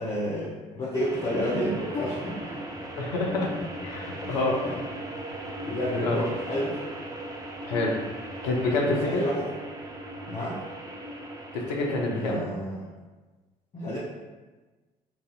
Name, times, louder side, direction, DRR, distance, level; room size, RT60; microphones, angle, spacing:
voice 1, 0.0-2.6 4.3-4.8 5.6-6.8 8.8-9.5 10.3-10.6 12.2-12.9 13.7-14.0, equal, 30° left, -8 dB, 0.8 m, -30 dB
sound 1, 0.9-12.4, right 1 dB, 15° right, 0.5 m, -38 dB
voice 2, 3.0-3.5 3.8-4.6 6.0-6.2 7.6-8.0 8.4-9.2 11.5-12.4, left 2 dB, 75° left, -1 dB, 0.6 m, -27 dB
4.0 x 2.6 x 2.3 m, 1.3 s
figure-of-eight pair, 50°, 21 cm